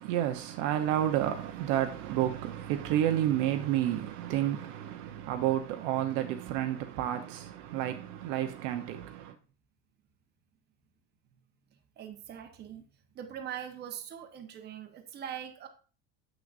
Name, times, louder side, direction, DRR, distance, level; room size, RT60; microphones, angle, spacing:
voice 1, 0.0-9.3, right 12 dB, 65° right, 0.9 m, -30 dB
voice 2, 12.0-12.8 13.1-15.7, right 9 dB, 30° right, 1.0 m, -42 dB
7.6 x 6.1 x 2.5 m
cardioid pair, 150°, 32 cm